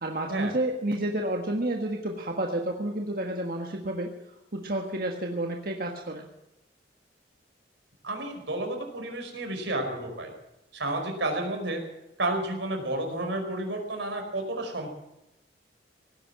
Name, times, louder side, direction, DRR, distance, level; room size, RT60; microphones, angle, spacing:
voice 1, 0.0-4.1 4.5-6.3, right 1 dB, 55° right, 1 dB, 1.6 m, -30 dB
voice 2, 8.0-10.3 10.7-11.8 12.2-14.9, right 2 dB, 90° right, 3 dB, 4.9 m, -31 dB
18.0 x 10.0 x 7.6 m, 0.89 s
head